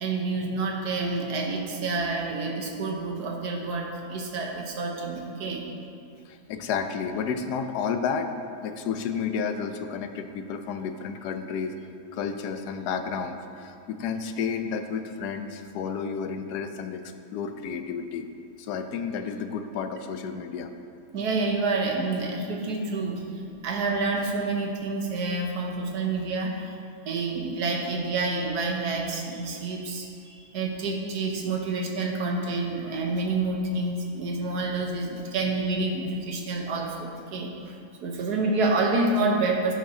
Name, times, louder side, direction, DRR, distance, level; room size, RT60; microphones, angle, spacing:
voice 1, 0.0-5.7 21.1-26.7 27.0-37.5 38.0-39.8, right 3 dB, 80° right, 1 dB, 1.5 m, -28 dB
voice 2, 6.3-8.3 8.6-11.7 12.1-18.3 18.6-20.7, left 6 dB, 90° left, 7 dB, 1.2 m, -31 dB
15.0 x 5.9 x 2.7 m, 2.5 s
omnidirectional pair, 1.7 m